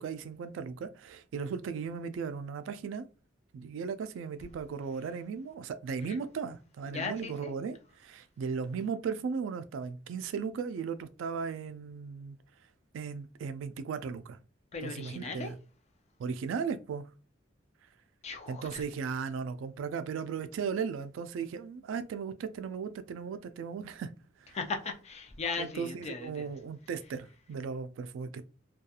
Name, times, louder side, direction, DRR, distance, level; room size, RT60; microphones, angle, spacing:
voice 1, 0.0-3.1 3.5-12.4 12.9-14.4 14.8-15.6 16.2-17.1 18.5-24.1 24.4-24.6 25.6-28.5, right 6 dB, 80° right, 0.3 m, -36 dB
voice 2, 6.9-7.5 14.7-15.5 18.2-18.9 24.5-26.5, left 4 dB, 35° left, 0.5 m, -38 dB
2.7 x 2.3 x 2.3 m
head